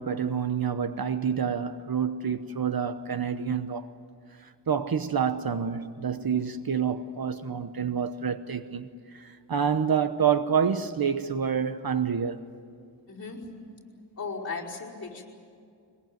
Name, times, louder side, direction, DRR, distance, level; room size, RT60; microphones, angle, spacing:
voice 1, 0.0-3.9 4.7-8.9 9.1-12.4, right 7 dB, 55° right, 1.0 m, -28 dB
voice 2, 13.1-13.4 14.2-15.2, left 4 dB, 35° left, 5.2 m, -36 dB
23.0 x 21.5 x 9.2 m
wide cardioid pair, 150°, 43 cm